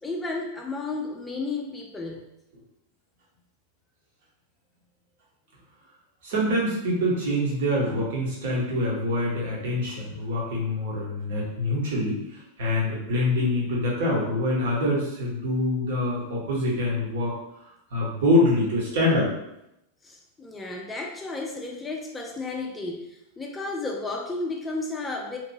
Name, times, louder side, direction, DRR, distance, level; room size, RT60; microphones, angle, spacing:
voice 1, 0.0-2.3 20.0-25.4, left 3 dB, 10° left, 1 dB, 0.4 m, -33 dB
voice 2, 6.2-19.3, left 1 dB, 55° right, -4 dB, 1.0 m, -25 dB
2.9 x 2.6 x 2.7 m, 0.85 s
figure-of-eight pair, 90°, 0 cm